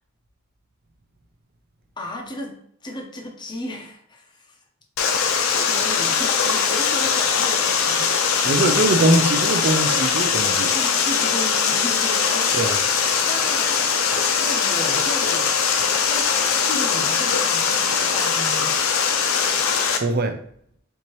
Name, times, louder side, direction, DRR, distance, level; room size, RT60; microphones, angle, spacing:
voice 1, 2.0-4.6 5.3-8.1 10.7-12.7 13.2-13.8 14.4-18.7, left 1 dB, 20° left, 1 dB, 0.7 m, -34 dB
Water, 5.0-20.0, left 6 dB, 85° left, 0.5 m, -21 dB
voice 2, 8.4-10.7 12.5-12.8 20.0-20.4, right 2 dB, 50° right, 8 dB, 0.5 m, -21 dB
4.5 x 2.7 x 3.0 m, 0.66 s
head